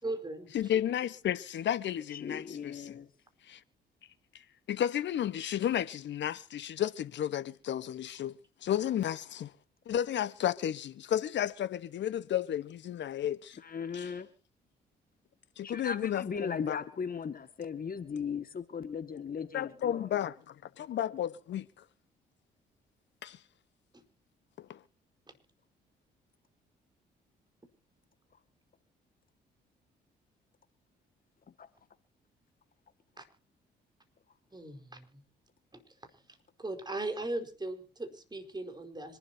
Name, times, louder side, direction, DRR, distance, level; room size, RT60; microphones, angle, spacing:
voice 1, 0.0-0.5 23.9-24.0 33.2-33.3 34.5-35.2 35.7-35.8 36.6-39.2, right 2 dB, 20° right, 4.7 m, -38 dB
voice 2, 0.5-3.0 3.5-3.6 4.7-8.4 8.6-9.5 9.9-13.6 13.9-14.1 15.6-16.8 19.5-21.7 23.2-23.4 24.6-24.8, left 10 dB, 60° left, 1.3 m, -33 dB
voice 3, 2.1-3.1 13.6-14.3 15.6-20.1 31.6-31.7, left 6 dB, 45° left, 2.0 m, -37 dB
26.0 x 12.0 x 2.9 m
hypercardioid pair, 50°, 21 cm